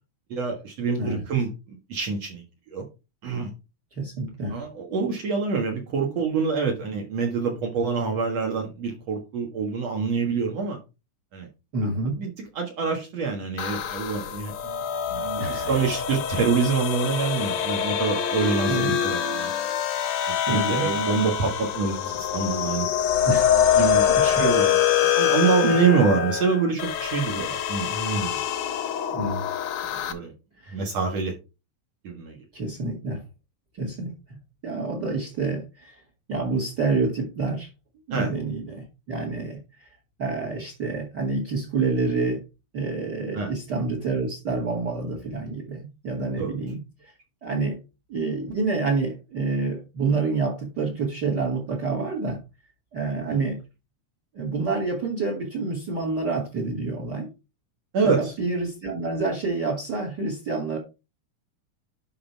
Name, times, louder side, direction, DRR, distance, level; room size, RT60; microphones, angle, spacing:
voice 1, 0.3-2.4 2.7-2.8 3.2-3.5 4.5-10.8 11.3-11.5 12.2-12.3 12.6-14.8 15.1-19.5 20.4-22.9 23.8-28.4 29.8-30.3 30.7-31.3 32.0-32.4 38.1-38.3 43.3-43.5 46.4-46.5 57.9-58.2, right 5 dB, 60° right, 1 dB, 2.5 m, -26 dB
voice 2, 4.0-4.6 11.7-12.2 15.4-16.0 18.7-19.0 20.5-20.9 23.2-23.6 24.0-24.5 25.6-25.9 29.1-29.5 30.6-30.8 32.5-33.2 33.7-34.4 34.6-36.0 36.3-37.7 38.1-39.9 40.2-42.4 42.7-47.1 47.4-47.8 48.1-52.4 52.9-53.6 54.3-57.3 58.0-60.8, right 3 dB, 35° right, 2 dB, 2.3 m, -28 dB
sound 1, 13.6-30.1, left 9 dB, 70° left, 2.0 m, -25 dB
11.0 x 3.9 x 4.5 m, 0.28 s
omnidirectional pair, 3.5 m